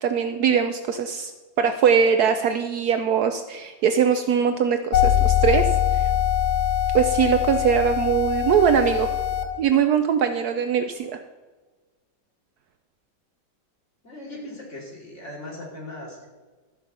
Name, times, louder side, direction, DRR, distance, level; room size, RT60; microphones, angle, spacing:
voice 1, 0.0-1.3 1.6-6.0 6.9-9.1 9.6-11.2, right 7 dB, 70° right, 8 dB, 1.0 m, -21 dB
sound 1, 4.9-9.4, left 10 dB, 65° left, 1.5 m, -22 dB
voice 2, 14.0-16.3, left 1 dB, 40° left, -3 dB, 3.1 m, -38 dB
13.0 x 5.6 x 6.7 m, 1.4 s
omnidirectional pair, 2.0 m